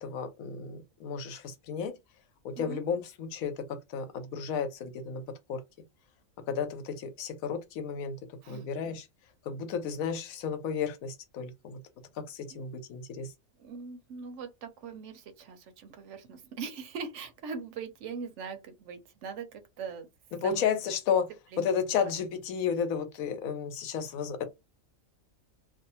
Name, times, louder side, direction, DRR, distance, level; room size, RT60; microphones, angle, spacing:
voice 1, 0.0-1.9 2.4-5.2 5.5-5.6 6.5-8.2 8.5-9.1 9.5-11.8 12.2-13.3 20.3-21.3 21.6-24.4, left 6 dB, 90° left, 1.0 m, -32 dB
voice 2, 13.6-20.1 20.4-20.7 21.5-21.7 22.0-22.1, right 5 dB, 70° right, 0.8 m, -41 dB
2.6 x 2.1 x 2.7 m
omnidirectional pair, 1.4 m